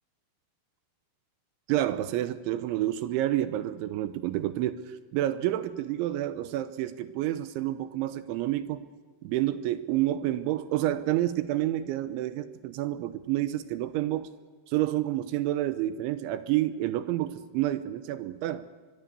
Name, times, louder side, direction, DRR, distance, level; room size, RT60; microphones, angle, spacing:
voice 1, 1.7-8.9 9.2-14.3 14.7-18.7, right 14 dB, 80° right, 12 dB, 3.0 m, -29 dB
23.5 x 22.0 x 6.8 m, 1.5 s
omnidirectional pair, 5.8 m